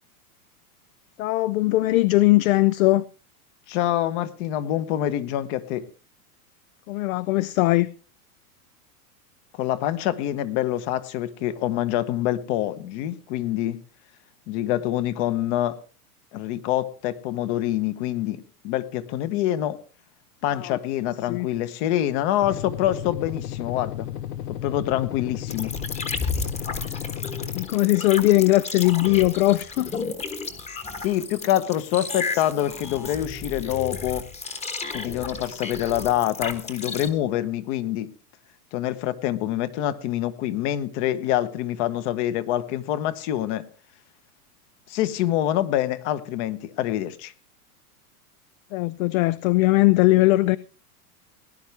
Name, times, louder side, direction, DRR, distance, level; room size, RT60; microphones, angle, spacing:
voice 1, 1.2-3.0 6.9-7.9 20.5-20.8 21.3-21.5 27.5-30.1 48.7-50.6, left 19 dB, 65° left, 0.6 m, -20 dB
voice 2, 3.7-5.9 9.5-13.8 14.5-15.8 16.3-19.8 20.4-24.1 24.5-25.7 31.0-34.2 34.9-38.1 38.7-43.6 44.9-47.3, left 12 dB, 50° left, 1.2 m, -26 dB
sound 1, 22.4-27.7, left 11 dB, 85° left, 1.2 m, -33 dB
sound 2, 25.5-37.1, left 4 dB, 15° left, 1.2 m, -33 dB
18.5 x 11.0 x 3.4 m
supercardioid pair, 140°, 46 cm